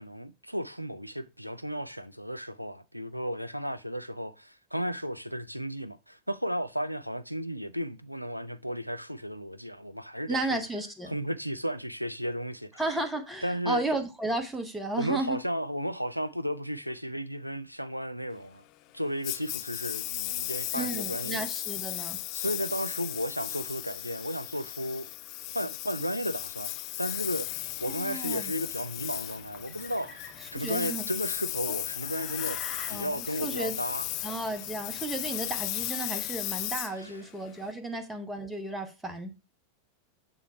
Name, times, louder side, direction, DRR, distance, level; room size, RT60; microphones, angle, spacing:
voice 1, 0.0-10.6 11.1-12.7 13.4-13.8 15.0-18.6 18.9-21.4 22.3-25.1 25.5-32.6 32.9-34.0 37.0-37.2, equal, 90° right, 0.4 m, -34 dB
voice 2, 10.3-11.1 12.8-15.4 20.7-22.2 27.9-28.5 30.4-31.1 32.9-33.8 34.2-39.3, right 2 dB, 5° right, 1.1 m, -33 dB
Engine, 19.2-37.7, left 17 dB, 40° left, 0.3 m, -36 dB
sound 1, 27.0-36.8, left 3 dB, 20° left, 1.7 m, -50 dB
6.9 x 3.6 x 4.4 m
figure-of-eight pair, 90°, 0 cm